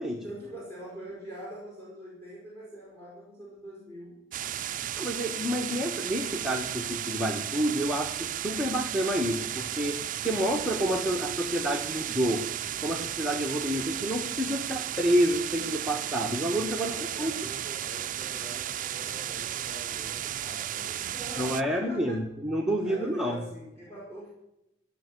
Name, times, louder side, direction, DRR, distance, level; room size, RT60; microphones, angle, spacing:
voice 1, 0.1-4.2 16.9-22.2 22.8-24.3, right 1 dB, 15° left, -5 dB, 5.7 m, -44 dB
sound 1, 4.3-21.6, right 11 dB, 45° right, 0.4 m, -34 dB
voice 2, 4.9-12.5 12.8-17.3 21.4-23.4, equal, 5° right, -1 dB, 1.2 m, -29 dB
15.5 x 6.9 x 9.7 m, 0.88 s
head